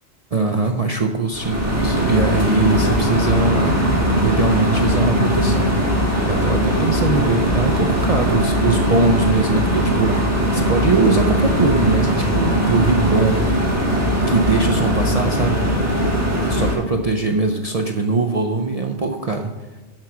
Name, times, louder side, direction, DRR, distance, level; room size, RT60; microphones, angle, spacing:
voice 1, 0.3-3.8 4.2-5.7 6.2-13.4 14.3-15.8 16.4-19.5, right 3 dB, 45° right, 3 dB, 0.5 m, -21 dB
sound 1, 1.3-16.7, equal, 15° right, 1.6 m, -19 dB
7.4 x 6.2 x 5.9 m, 1.1 s
omnidirectional pair, 1.2 m